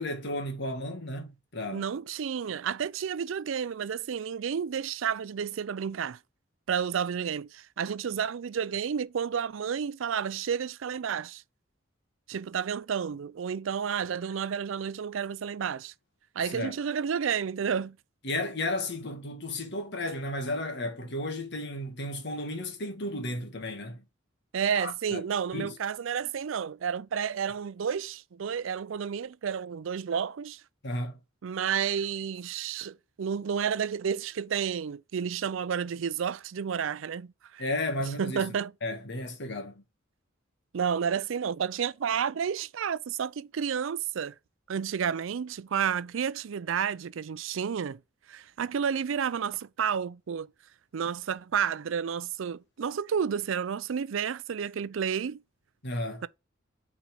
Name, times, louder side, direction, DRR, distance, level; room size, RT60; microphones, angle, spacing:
voice 1, 0.0-1.8 16.4-16.8 18.2-24.0 24.7-25.2 25.5-25.8 30.8-31.2 37.6-38.4 38.8-39.8 55.8-56.2, left 1 dB, 60° left, 1.5 m, -33 dB
voice 2, 1.7-6.2 6.7-11.4 12.3-15.9 16.4-18.0 24.5-30.6 31.4-37.6 38.2-38.7 40.7-44.3 44.7-48.0 48.3-50.5 50.9-55.4 56.2-56.3, right 7 dB, 70° right, 0.4 m, -31 dB
6.1 x 4.1 x 4.9 m
head